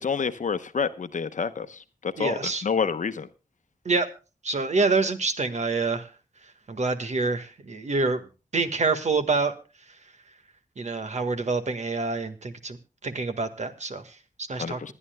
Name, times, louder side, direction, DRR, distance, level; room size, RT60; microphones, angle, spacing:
voice 1, 0.0-3.3 14.6-14.9, left 6 dB, 65° left, 0.9 m, -28 dB
voice 2, 2.2-2.6 3.8-4.1 4.4-6.1 6.7-8.2 8.5-9.5 10.8-12.8 13.0-14.9, right 3 dB, 55° right, 1.5 m, -27 dB
26.5 x 10.0 x 2.2 m
wide cardioid pair, 100°, 14 cm